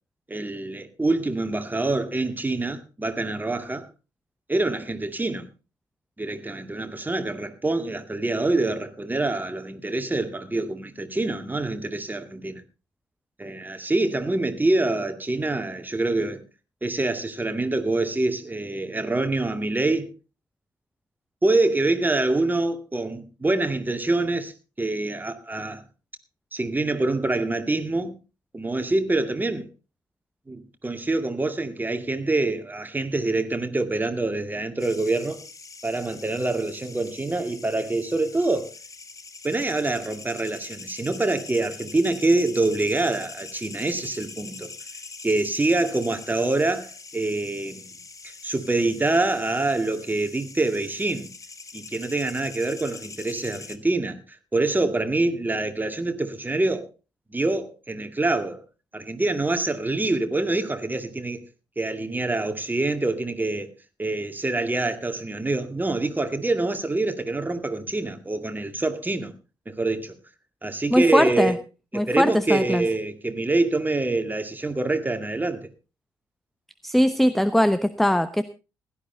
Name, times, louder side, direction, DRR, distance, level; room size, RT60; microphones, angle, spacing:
voice 1, 0.3-3.9 4.5-5.5 6.2-12.6 13.4-16.4 16.8-20.1 21.4-24.5 24.8-25.8 26.5-28.1 28.5-29.7 30.5-35.4 35.8-38.7 39.4-44.7 45.2-47.9 48.2-51.3 51.7-54.2 54.5-56.9 57.3-58.6 58.9-61.4 61.8-63.7 64.0-69.4 69.7-70.2 70.6-71.6 71.9-75.7, right 2 dB, 15° right, 2.2 m, -25 dB
sound 1, 34.8-53.8, left 4 dB, 30° left, 1.7 m, -43 dB
voice 2, 70.9-71.6 71.9-72.9 76.8-78.4, equal, ahead, 0.8 m, -20 dB
16.0 x 12.0 x 4.0 m
figure-of-eight pair, 45°, 11 cm